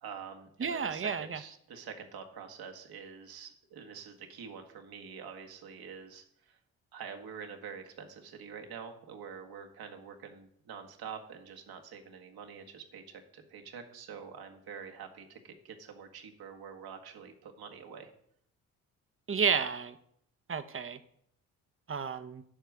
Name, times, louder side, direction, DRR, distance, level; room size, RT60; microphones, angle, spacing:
voice 1, 0.0-6.6 6.9-18.1, right 6 dB, 60° right, 4 dB, 1.8 m, -46 dB
voice 2, 0.6-1.4 19.3-20.0 20.5-21.0 21.9-22.4, right 6 dB, 30° right, 11 dB, 1.1 m, -31 dB
11.5 x 4.6 x 6.4 m, 0.69 s
hypercardioid pair, 45°, 41 cm